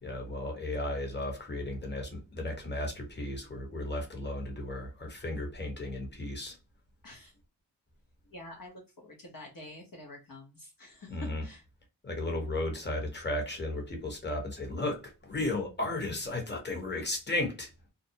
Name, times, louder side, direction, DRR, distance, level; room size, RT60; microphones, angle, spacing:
voice 1, 0.0-6.6 11.1-11.4 12.0-17.7, left 2 dB, 25° left, 1.1 m, -34 dB
voice 2, 7.0-7.3 8.3-11.6, left 1 dB, 50° left, 0.9 m, -47 dB
2.5 x 2.0 x 2.7 m
cardioid pair, 45°, 43 cm